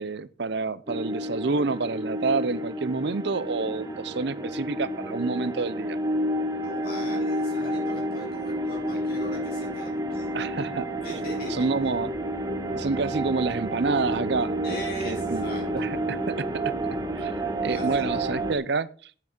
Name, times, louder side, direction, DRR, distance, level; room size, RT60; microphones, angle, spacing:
voice 1, 0.0-6.0 10.3-10.9 11.5-12.1 12.6-14.6 15.0-15.4 15.7-16.5 17.1-17.3 17.6-19.1, right 4 dB, 65° right, 0.7 m, -28 dB
sound 1, 0.9-18.5, right 1 dB, 20° right, 1.5 m, -30 dB
voice 2, 6.6-10.3 11.0-11.7 14.6-15.8 17.6-18.3, left 1 dB, 55° left, 5.4 m, -39 dB
8.9 x 8.5 x 6.1 m
head